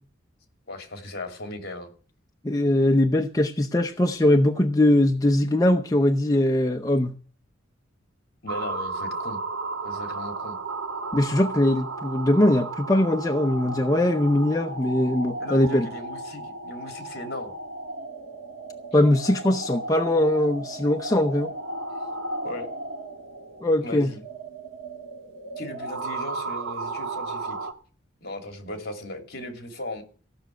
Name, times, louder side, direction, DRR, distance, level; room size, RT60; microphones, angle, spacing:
voice 1, 0.7-1.9 8.4-9.4 9.8-10.6 15.4-17.5 22.4-22.7 23.8-24.2 25.6-27.7 28.2-30.0, left 1 dB, 55° left, 2.9 m, -37 dB
voice 2, 2.4-7.1 11.1-15.9 18.9-21.5 23.6-24.1, left 1 dB, 20° left, 0.7 m, -21 dB
sound 1, 8.5-27.7, right 3 dB, 70° right, 1.6 m, -34 dB
15.5 x 6.2 x 9.2 m
head